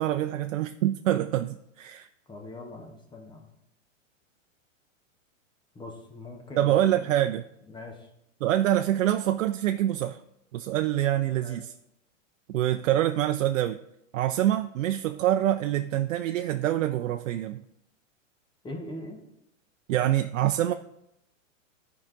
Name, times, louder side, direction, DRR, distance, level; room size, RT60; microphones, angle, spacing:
voice 1, 0.0-2.1 6.6-7.4 8.4-10.2 10.5-11.7 12.5-13.8 14.1-17.6 19.9-20.7, right 12 dB, 75° right, 8 dB, 0.5 m, -25 dB
voice 2, 2.3-3.5 5.7-7.2 7.7-8.1 11.4-11.6 18.6-19.2, left 2 dB, 10° left, 2 dB, 1.2 m, -42 dB
13.5 x 4.8 x 3.8 m, 0.82 s
hypercardioid pair, 135°, 39 cm